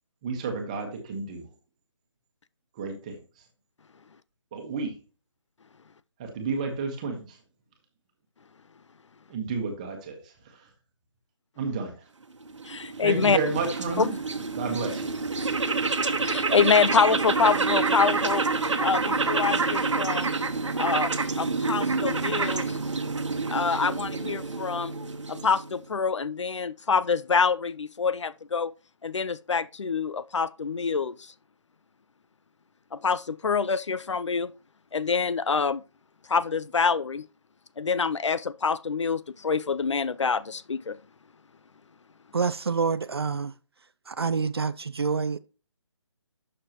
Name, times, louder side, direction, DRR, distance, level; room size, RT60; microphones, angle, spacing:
voice 1, 0.2-1.4 2.8-3.2 4.5-4.9 6.2-7.4 9.3-10.6 11.6-11.9 13.0-14.2 14.5-15.1, right 4 dB, 15° right, 1.3 m, -31 dB
sound 1, 12.4-25.8, right 4 dB, 75° right, 1.3 m, -28 dB
voice 2, 12.6-13.4 14.0-14.2 16.2-18.4 18.8-20.3 20.8-21.1 21.4-22.8 23.5-24.9 25.3-28.7 29.0-31.3 32.9-34.5 34.9-35.8 36.3-37.2 37.8-41.0, left 5 dB, 70° left, 0.5 m, -26 dB
voice 3, 42.3-43.5 44.1-45.4, right 5 dB, 50° right, 0.5 m, -27 dB
11.5 x 6.7 x 3.0 m
hypercardioid pair, 170°, 16 cm